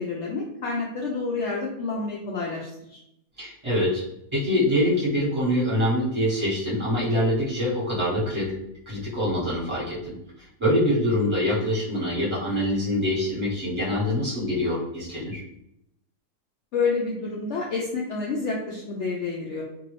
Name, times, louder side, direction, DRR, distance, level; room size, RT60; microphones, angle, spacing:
voice 1, 0.0-3.0 16.7-19.6, left 4 dB, 85° left, -3 dB, 0.6 m, -29 dB
voice 2, 3.4-4.0 4.3-8.5 8.9-15.4, left 1 dB, 20° right, -9 dB, 1.3 m, -25 dB
2.6 x 2.6 x 3.2 m, 0.80 s
omnidirectional pair, 1.8 m